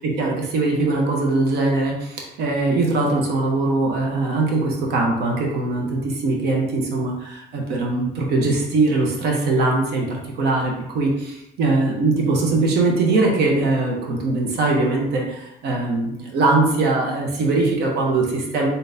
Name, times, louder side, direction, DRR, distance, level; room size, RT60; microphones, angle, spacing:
voice 1, 0.2-18.7, right 2 dB, 75° right, 0 dB, 1.0 m, -21 dB
3.9 x 3.9 x 2.7 m, 0.81 s
cardioid pair, 110°, 17 cm